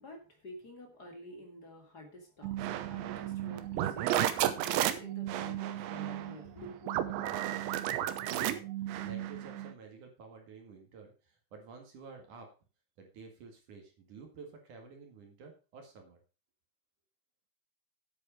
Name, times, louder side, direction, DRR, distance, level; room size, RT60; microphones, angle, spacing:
voice 1, 0.0-6.9, equal, 40° left, 3 dB, 1.5 m, -50 dB
sound 1, 2.4-9.7, right 12 dB, 80° right, 3.2 m, -33 dB
voice 2, 7.2-8.6 9.0-12.5 13.0-16.2, right 5 dB, 55° right, 3 dB, 2.9 m, -50 dB
9.6 x 8.5 x 5.1 m, 0.34 s
omnidirectional pair, 5.2 m